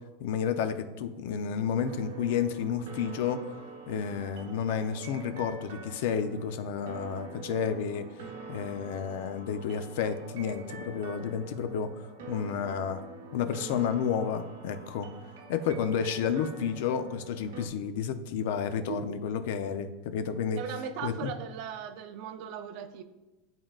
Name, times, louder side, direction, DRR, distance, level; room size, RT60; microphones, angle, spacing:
voice 1, 0.2-3.4 3.9-8.1 8.5-11.9 12.3-13.0 13.3-15.1 15.5-20.6 21.0-21.3, left 7 dB, 65° left, 9 dB, 0.5 m, -31 dB
sound 1, 1.8-17.7, right 4 dB, 85° right, 1.0 m, -46 dB
voice 2, 18.9-19.2 20.6-23.0, right 7 dB, 50° right, 9 dB, 0.5 m, -38 dB
11.0 x 3.7 x 2.4 m, 1.1 s
supercardioid pair, 165°, 0 cm